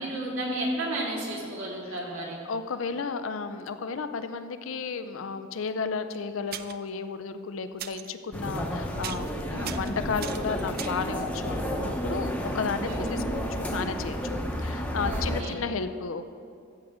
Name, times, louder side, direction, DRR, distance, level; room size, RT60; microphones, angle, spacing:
voice 1, 0.0-2.4 9.5-9.8 12.9-13.2 15.0-15.5, right 1 dB, 85° right, -3 dB, 2.3 m, -32 dB
voice 2, 2.5-16.2, left 5 dB, 80° left, 10 dB, 0.5 m, -33 dB
sound 1, 6.1-6.2 6.5-6.9 7.8-8.1 8.5-8.7 9.0-9.3 9.6-11.1 13.4-13.5 13.8-13.9, right 11 dB, 50° right, 0.4 m, -39 dB
sound 2, 8.3-15.4, equal, 5° left, 0.9 m, -31 dB
14.0 x 7.6 x 3.6 m, 2.5 s
head